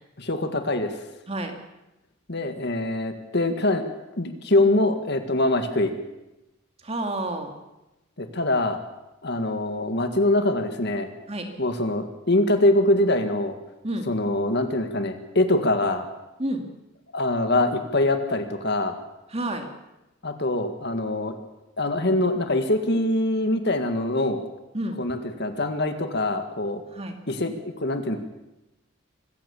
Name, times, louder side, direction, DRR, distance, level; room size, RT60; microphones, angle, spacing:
voice 1, 0.2-1.0 2.3-3.8 4.2-5.9 8.2-8.8 9.2-11.1 11.6-13.5 14.1-16.1 17.1-19.0 20.2-21.4 21.8-24.4 25.0-26.8 27.3-28.2, left 1 dB, 55° left, 7 dB, 1.9 m, -24 dB
voice 2, 6.8-7.5 11.3-11.5 13.8-14.1 16.4-16.6 19.3-19.7 24.7-25.0 26.9-27.2, right 1 dB, 30° right, 5 dB, 2.5 m, -29 dB
25.0 x 15.0 x 7.2 m, 0.95 s
head